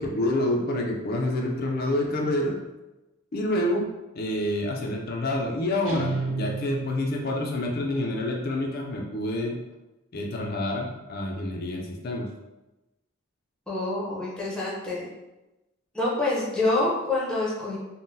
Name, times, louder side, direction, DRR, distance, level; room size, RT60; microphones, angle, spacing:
voice 1, 0.0-2.6 3.3-9.6 10.1-12.3, left 1 dB, 50° left, 1 dB, 0.4 m, -28 dB
Guitar, 5.8-7.5, right 3 dB, 90° right, 0.8 m, -31 dB
voice 2, 13.7-15.1 15.9-17.8, left 2 dB, 5° left, -6 dB, 0.7 m, -26 dB
3.7 x 2.1 x 2.6 m, 1.0 s
head